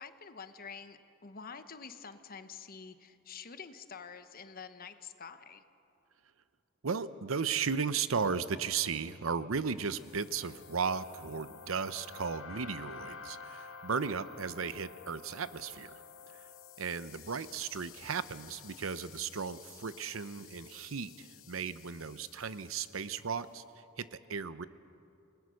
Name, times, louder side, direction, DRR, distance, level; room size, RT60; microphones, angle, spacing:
voice 1, 0.0-5.6, left 5 dB, 45° left, 10 dB, 1.1 m, -47 dB
voice 2, 6.8-16.0 16.3-16.5 16.8-23.6 24.0-24.7, right 6 dB, 85° right, 14 dB, 0.7 m, -35 dB
sound 1, 9.8-23.2, left 6 dB, 70° left, 0.9 m, -51 dB
28.5 x 20.0 x 6.4 m, 2.7 s
head